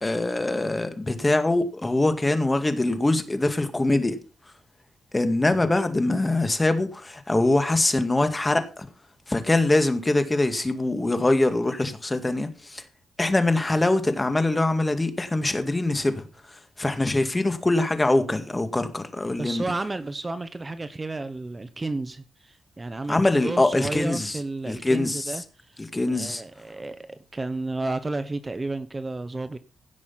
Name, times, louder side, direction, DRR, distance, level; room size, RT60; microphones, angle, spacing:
voice 1, 0.0-4.2 5.1-8.9 9.3-12.8 13.2-19.6 23.1-24.4 24.7-25.3 25.9-26.4, left 2 dB, 20° left, 2.0 m, -23 dB
voice 2, 19.4-25.8 26.1-29.6, right 2 dB, 25° right, 1.0 m, -32 dB
16.5 x 6.3 x 5.8 m
cardioid pair, 90°, 0 cm